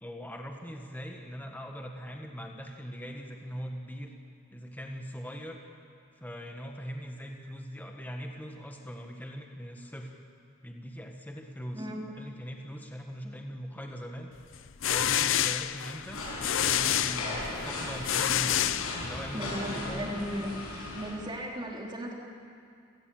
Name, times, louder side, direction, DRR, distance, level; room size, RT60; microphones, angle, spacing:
voice 1, 0.0-4.1 4.5-5.6 6.2-10.2 10.6-11.9 12.2-14.3 14.9-16.2 16.5-18.7 19.0-20.2, equal, 10° left, 2 dB, 1.6 m, -41 dB
voice 2, 11.7-12.1 19.3-20.6 20.9-22.1, equal, 20° right, -1 dB, 3.4 m, -36 dB
sound 1, 14.5-19.4, left 11 dB, 60° left, 0.6 m, -29 dB
sound 2, 16.1-21.2, left 2 dB, 80° left, 6.9 m, -37 dB
30.0 x 18.0 x 7.8 m, 2.4 s
head